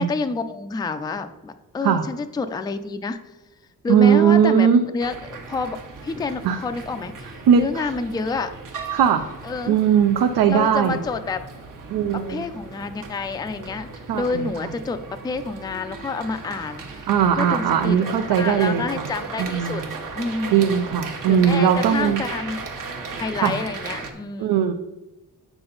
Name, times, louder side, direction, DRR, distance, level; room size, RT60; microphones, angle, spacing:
voice 1, 0.0-3.2 3.8-4.7 4.9-8.5 9.4-9.8 10.5-11.4 12.3-13.9 14.1-17.1 17.4-20.5 21.3-22.6 23.2-24.7, left 4 dB, 10° left, 9 dB, 0.3 m, -28 dB
voice 2, 3.9-4.8 6.4-6.6 7.5-7.9 8.9-9.2 9.7-11.0 11.9-12.4 14.1-14.7 17.1-19.1 19.4-19.9 20.5-22.2 23.4-23.6 24.4-24.7, right 8 dB, 80° right, 6 dB, 0.6 m, -19 dB
sound 1, 5.0-24.1, right 4 dB, 60° right, 1.1 m, -36 dB
7.7 x 6.0 x 3.8 m, 1.1 s
wide cardioid pair, 145°, 36 cm